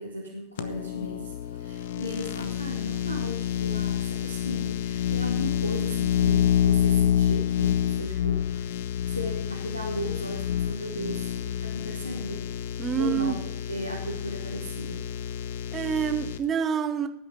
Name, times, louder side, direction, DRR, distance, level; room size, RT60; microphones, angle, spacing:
voice 1, 0.0-8.7 9.0-12.4 13.0-13.4 13.7-15.1, equal, 85° left, -1 dB, 2.4 m, -36 dB
sound 1, 0.6-16.4, left 10 dB, 55° left, 1.0 m, -28 dB
voice 2, 12.8-13.3 15.7-17.1, right 8 dB, 25° right, 10 dB, 1.2 m, -27 dB
17.5 x 9.4 x 4.6 m, 0.80 s
figure-of-eight pair, 90°, 0 cm